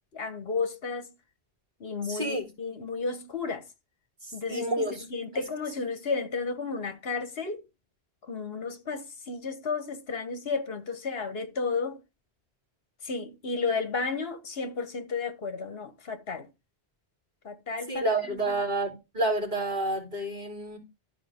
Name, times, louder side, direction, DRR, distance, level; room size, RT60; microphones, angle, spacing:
voice 1, 0.1-1.1 1.8-3.6 4.3-7.6 8.2-12.0 13.0-16.5 17.4-18.5, left 4 dB, 65° left, 1.4 m, -33 dB
voice 2, 2.0-2.5 4.2-5.0 5.3-5.4 17.9-20.8, right 2 dB, 40° right, 3.6 m, -29 dB
12.5 x 4.8 x 3.6 m
omnidirectional pair, 1.1 m